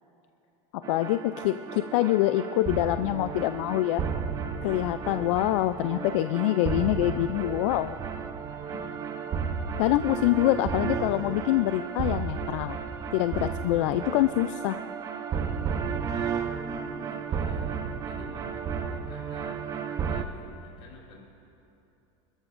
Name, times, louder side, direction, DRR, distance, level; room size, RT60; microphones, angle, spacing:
voice 1, 0.7-4.0 4.6-8.0 9.8-12.8 13.1-14.8, left 15 dB, 65° left, 11 dB, 0.4 m, -25 dB
sound 1, 0.8-20.2, right 6 dB, 20° right, 0.5 m, -33 dB
voice 2, 16.6-21.3, left 4 dB, 35° left, -3 dB, 3.9 m, -50 dB
27.5 x 13.5 x 2.6 m, 2.9 s
supercardioid pair, 170°, 17 cm